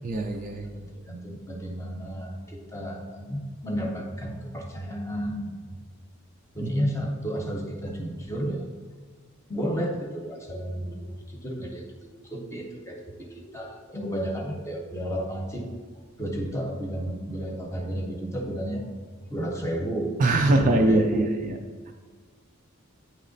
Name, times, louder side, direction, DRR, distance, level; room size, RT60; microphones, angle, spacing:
voice 1, 0.0-0.9 6.6-6.7 20.2-21.5 21.9-22.0, right 2 dB, 35° right, 3 dB, 0.4 m, -23 dB
voice 2, 1.1-5.8 6.5-8.7 9.5-15.7 16.2-18.9 19.3-20.2 20.4-21.5, right 1 dB, 15° left, 1 dB, 0.7 m, -32 dB
8.9 x 3.1 x 3.9 m, 1.5 s
head